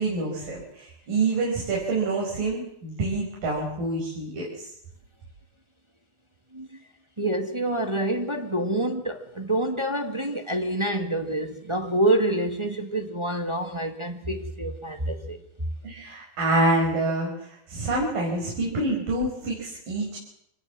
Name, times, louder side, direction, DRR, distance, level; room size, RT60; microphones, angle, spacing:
voice 1, 0.0-4.7 15.8-20.2, right 2 dB, 85° right, 7.2 m, -27 dB
voice 2, 7.2-15.4, right 1 dB, 15° right, 1.2 m, -27 dB
26.5 x 20.0 x 7.5 m
omnidirectional pair, 3.8 m